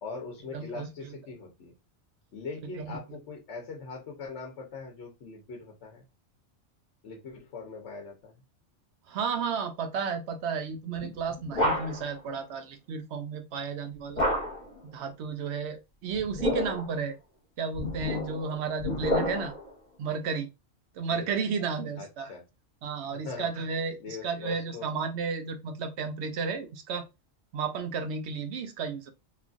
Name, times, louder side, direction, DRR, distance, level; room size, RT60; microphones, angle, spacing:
voice 1, 0.0-1.7 2.3-6.0 7.0-8.3 21.1-21.3 22.0-22.4 23.1-23.5 24.0-24.9, left 4 dB, 65° left, 1.0 m, -41 dB
voice 2, 0.5-0.9 2.7-3.0 9.1-14.3 14.8-17.2 17.6-19.5 20.0-20.5 20.9-22.3 22.8-27.1 27.5-29.1, right 5 dB, 70° right, 0.8 m, -33 dB
sound 1, 11.0-12.2 14.2-14.8 16.1-17.0 17.7-19.7, left 1 dB, 35° left, 1.2 m, -30 dB
3.0 x 2.4 x 2.4 m
omnidirectional pair, 1.3 m